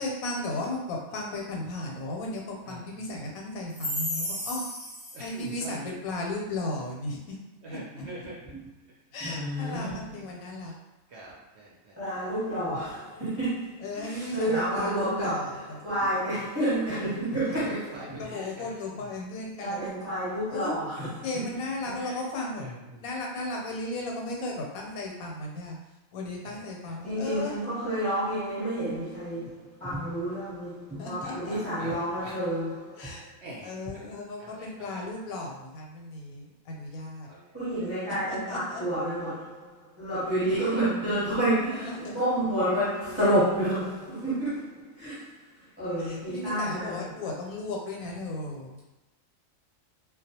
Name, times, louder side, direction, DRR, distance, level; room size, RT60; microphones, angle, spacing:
voice 1, 0.0-4.6 5.2-7.4 7.7-7.8 9.1-10.7 13.8-15.8 18.2-20.8 21.2-22.7 22.9-25.8 26.1-27.7 31.0-31.6 33.0-33.3 33.6-37.3 38.3-38.8 40.5-40.6 41.7-42.2 46.0-48.8, left 2 dB, 85° left, 1.0 m, -35 dB
voice 2, 4.1-4.6 8.0-8.1 9.2-10.2 12.0-18.5 19.6-21.3 21.8-22.1 27.0-33.2 37.5-47.2, right 1 dB, 15° right, 0.7 m, -30 dB
voice 3, 5.1-6.0 7.6-8.3 9.3-9.4 9.6-10.0 11.1-12.0 14.3-14.4 17.5-17.6 17.9-19.0 20.9-21.1 22.6-23.0 26.4-27.0 31.2-31.9 32.2-32.4 33.4-33.7 34.4-35.0 37.2-37.9 40.7-40.8, equal, 65° right, 0.7 m, -44 dB
2.3 x 2.1 x 2.8 m
omnidirectional pair, 1.5 m